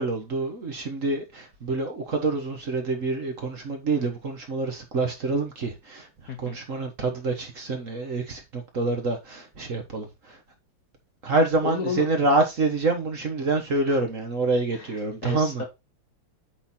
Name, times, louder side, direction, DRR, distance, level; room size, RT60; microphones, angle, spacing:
voice 1, 0.0-6.1 6.4-10.4 11.2-15.6, right 2 dB, 45° right, 1.5 m, -27 dB
voice 2, 6.3-6.6 11.6-12.1 13.9-14.0 14.7-15.6, left 6 dB, 50° left, 1.4 m, -32 dB
8.6 x 4.1 x 4.3 m
omnidirectional pair, 2.2 m